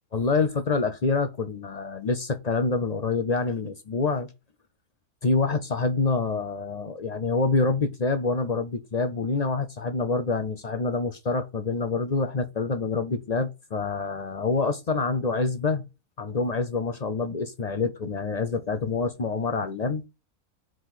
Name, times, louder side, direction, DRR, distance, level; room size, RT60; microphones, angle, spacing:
voice 1, 0.1-4.3 5.2-15.8 16.2-20.0, left 3 dB, 55° left, 0.4 m, -26 dB
5.1 x 3.8 x 5.7 m
omnidirectional pair, 1.6 m